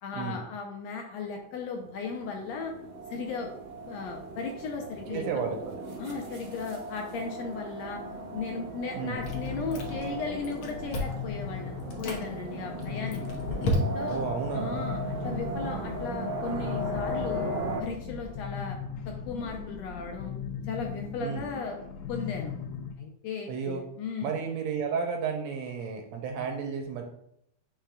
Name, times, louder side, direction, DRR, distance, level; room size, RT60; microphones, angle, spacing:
voice 1, 0.0-2.7 3.1-3.5 3.8-5.4 6.0-8.0 8.3-13.4 13.9-14.2 14.5-17.5 17.8-18.8 19.1-20.3 20.6-21.8 22.1-22.5 23.0-24.3, left 4 dB, 75° left, 2 dB, 1.7 m, -36 dB
sound 1, 1.6-17.8, right 1 dB, 55° right, 1.2 m, -37 dB
voice 2, 5.1-5.7 8.9-9.2 14.1-14.9 21.2-21.4 23.5-23.8 24.2-27.0, right 6 dB, 75° right, 3 dB, 1.8 m, -32 dB
sound 2, 9.1-22.9, left 6 dB, 90° left, 2.1 m, -38 dB
Chewing mastication, 9.2-10.2 10.4-11.3 11.8-12.2 12.8-14.2, equal, 60° left, 1.5 m, -32 dB
9.0 x 4.7 x 2.3 m, 0.74 s
omnidirectional pair, 3.5 m